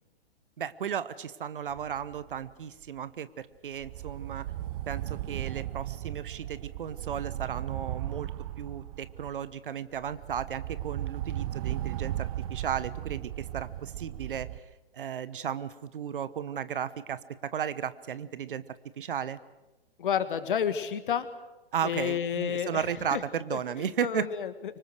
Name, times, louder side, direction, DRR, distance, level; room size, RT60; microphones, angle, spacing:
voice 1, 0.6-4.5 4.9-8.3 8.6-14.5 14.9-18.6 19.0-19.4 21.7-24.3, right 8 dB, 55° right, 16 dB, 1.1 m, -34 dB
sound 1, 1.7-2.4 2.8-3.0 3.7-9.5 9.9-14.6, right 13 dB, 35° right, 0.8 m, -36 dB
voice 2, 20.0-21.3 21.8-22.8 23.1-23.2 23.5-24.5, left 8 dB, 55° left, 12 dB, 1.8 m, -30 dB
25.0 x 24.5 x 6.6 m, 1.1 s
figure-of-eight pair, 115°, 31 cm